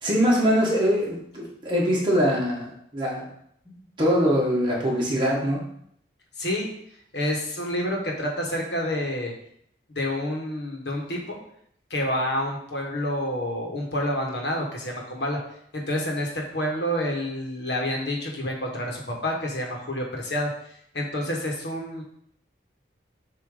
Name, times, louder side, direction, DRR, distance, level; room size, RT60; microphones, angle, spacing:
voice 1, 0.0-2.7 2.9-3.3 3.6-5.6, equal, 25° right, -5 dB, 1.7 m, -23 dB
voice 2, 6.4-6.7 7.1-9.3 9.9-11.4 11.9-15.4 15.7-20.5 20.9-22.0, left 1 dB, 70° left, 0 dB, 1.4 m, -28 dB
7.2 x 3.0 x 5.1 m, 0.68 s
head